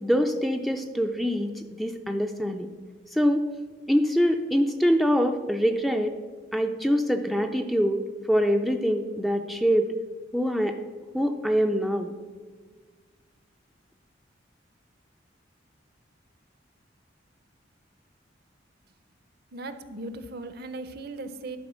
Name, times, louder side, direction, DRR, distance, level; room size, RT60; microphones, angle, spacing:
voice 1, 0.0-2.7 3.1-3.5 3.9-6.1 6.5-8.0 8.3-9.9 10.3-10.8 11.1-12.1, equal, ahead, 5 dB, 0.4 m, -24 dB
voice 2, 19.5-21.6, right 2 dB, 55° right, 11 dB, 0.6 m, -37 dB
11.5 x 4.3 x 6.2 m, 1.5 s
head